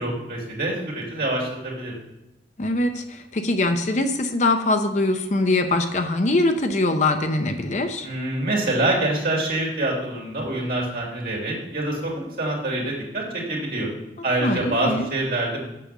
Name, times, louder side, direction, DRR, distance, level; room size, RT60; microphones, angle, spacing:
voice 1, 0.0-1.9 8.0-13.2 13.5-13.9 14.2-15.6, right 2 dB, 55° right, -3 dB, 2.6 m, -25 dB
voice 2, 2.6-8.1 14.4-15.1, left 2 dB, 40° left, 6 dB, 0.7 m, -22 dB
7.6 x 5.0 x 6.7 m, 0.93 s
head